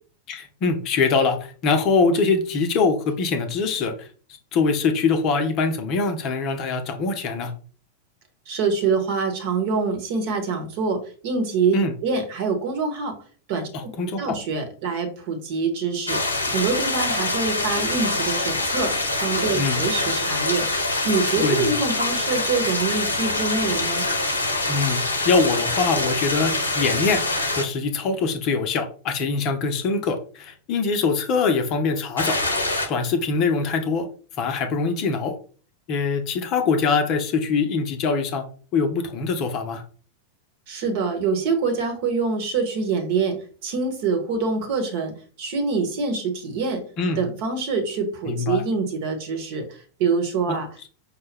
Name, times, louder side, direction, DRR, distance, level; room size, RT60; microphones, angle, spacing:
voice 1, 0.3-4.1 4.5-7.5 11.7-11.9 13.7-14.4 19.5-19.8 21.4-21.8 24.7-32.4 32.9-34.1 34.4-35.4 35.9-38.4 38.7-39.8 47.0-47.2 48.2-48.6 50.5-50.6, left 4 dB, 40° left, 7 dB, 0.6 m, -23 dB
voice 2, 8.5-13.2 13.5-13.7 14.2-16.2 16.5-18.9 19.2-20.7 21.0-24.1 40.7-45.1 45.4-46.8 47.2-50.7, right 4 dB, 50° right, 5 dB, 1.1 m, -25 dB
sound 1, 16.1-27.6 32.2-32.9, left 2 dB, 75° left, 0.8 m, -25 dB
5.2 x 2.2 x 3.3 m, 0.40 s
figure-of-eight pair, 90°, 0 cm